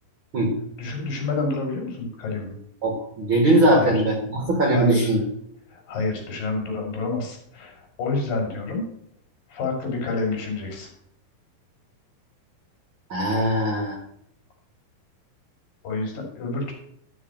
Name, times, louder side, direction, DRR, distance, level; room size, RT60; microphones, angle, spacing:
voice 1, 0.8-2.5 3.7-4.0 4.7-5.2 5.7-8.9 9.5-10.9 13.4-13.5 15.8-16.7, left 3 dB, 65° left, 1 dB, 4.5 m, -28 dB
voice 2, 2.8-5.2 13.1-14.0, right 1 dB, 45° right, 0 dB, 1.9 m, -20 dB
11.5 x 4.9 x 7.7 m, 0.70 s
omnidirectional pair, 4.3 m